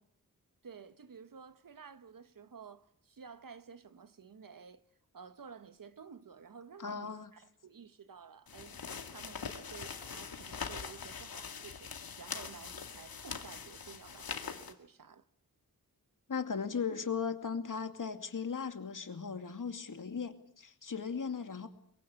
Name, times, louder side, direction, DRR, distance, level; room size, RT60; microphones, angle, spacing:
voice 1, 0.6-4.8 5.1-8.8 9.1-15.2, right 6 dB, 70° right, 1.5 m, -52 dB
voice 2, 6.8-7.3 16.3-21.7, left 6 dB, 60° left, 2.5 m, -37 dB
sound 1, 8.5-14.7, left 6 dB, 80° left, 2.2 m, -43 dB
23.0 x 23.0 x 8.4 m
wide cardioid pair, 80°, 35 cm